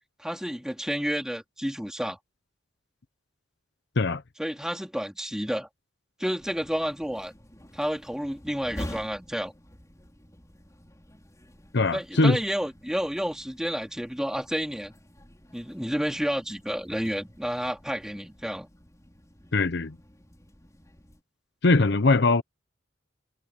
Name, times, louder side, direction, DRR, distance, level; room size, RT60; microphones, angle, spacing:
voice 1, 0.2-2.2 4.4-5.7 6.2-7.3 7.7-9.5 11.9-14.9 15.5-18.7, equal, 5° right, 3.6 m, -30 dB
sound 1, 6.4-21.2, equal, 20° left, 4.9 m, -47 dB
voice 2, 11.7-12.4 19.5-20.0 21.6-22.4, left 3 dB, 65° left, 0.8 m, -21 dB
head